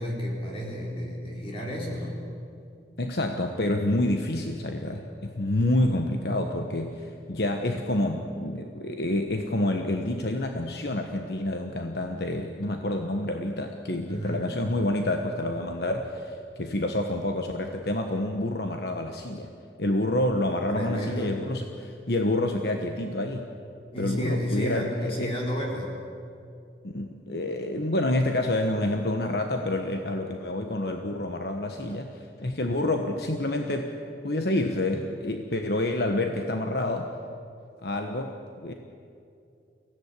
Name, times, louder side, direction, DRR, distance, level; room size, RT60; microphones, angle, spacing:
voice 1, 0.0-2.2 14.1-14.5 20.7-21.4 23.9-25.9, equal, 30° left, -2 dB, 3.7 m, -31 dB
voice 2, 3.0-19.5 19.8-23.5 24.0-25.3 26.8-33.9 34.2-37.1 37.8-38.7, left 1 dB, 60° left, 4 dB, 1.3 m, -28 dB
23.5 x 17.0 x 9.8 m, 2.5 s
head